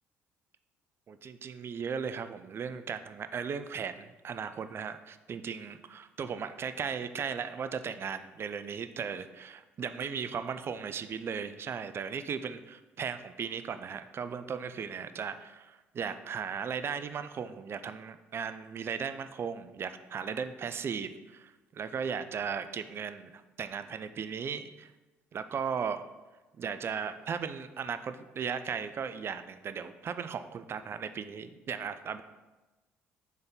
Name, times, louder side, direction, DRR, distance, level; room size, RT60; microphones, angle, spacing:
voice 1, 1.1-24.9 25.3-26.0 26.6-32.2, right 6 dB, 45° right, 11 dB, 0.3 m, -37 dB
3.9 x 3.4 x 3.8 m, 1.1 s
hypercardioid pair, 60°, 6 cm